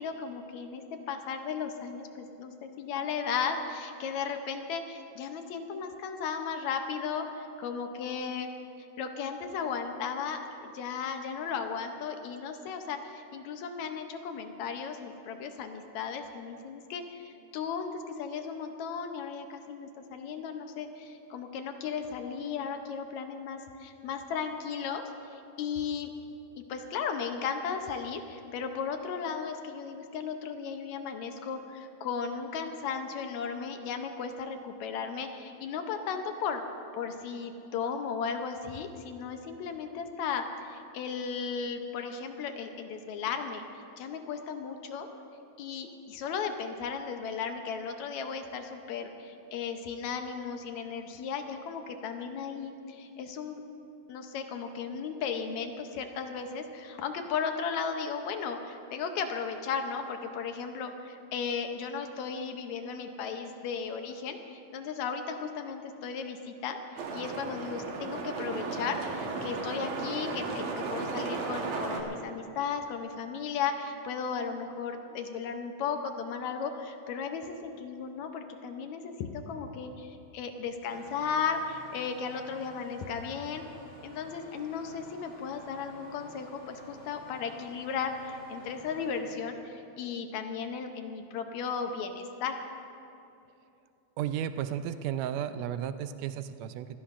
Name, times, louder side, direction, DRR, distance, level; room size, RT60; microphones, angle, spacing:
voice 1, 0.0-8.5 9.0-26.1 26.6-36.6 36.9-43.6 44.0-45.1 45.6-53.6 54.1-66.8 67.1-83.6 84.0-92.6, left 6 dB, 75° left, 6 dB, 2.0 m, -35 dB
sound 1, 67.0-72.0, right 4 dB, 60° right, 2.3 m, -35 dB
Engine starting, 80.8-89.2, left 1 dB, 25° left, 3.1 m, -52 dB
voice 2, 94.2-97.0, right 10 dB, 80° right, 11 dB, 1.6 m, -33 dB
24.5 x 16.0 x 2.5 m, 2.7 s
omnidirectional pair, 3.5 m